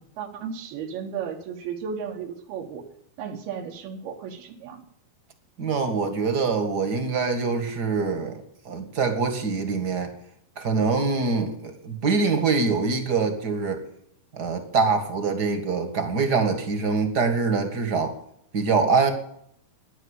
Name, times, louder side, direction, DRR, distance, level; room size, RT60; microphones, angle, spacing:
voice 1, 0.0-2.8 3.2-4.8, right 7 dB, 85° right, 2 dB, 3.3 m, -34 dB
voice 2, 5.6-8.4 8.6-10.1 10.6-13.9 14.3-18.1 18.5-19.1, right 4 dB, 40° right, 7 dB, 1.6 m, -24 dB
12.0 x 10.5 x 8.2 m, 0.71 s
omnidirectional pair, 4.4 m